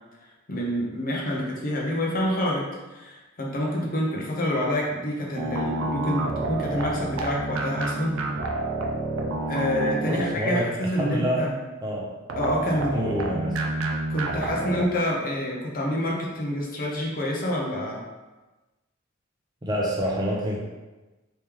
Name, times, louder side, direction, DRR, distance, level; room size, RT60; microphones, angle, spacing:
voice 1, 0.5-8.2 9.5-11.6 12.4-13.0 14.1-18.0, left 1 dB, 45° left, -2 dB, 0.7 m, -27 dB
sound 1, 5.3-10.7 12.3-14.9, right 2 dB, 90° right, 0.5 m, -29 dB
voice 2, 10.1-11.5 11.8-12.1 12.9-13.6 19.6-20.6, equal, 20° right, -3 dB, 0.6 m, -27 dB
3.2 x 3.0 x 3.5 m, 1.1 s
head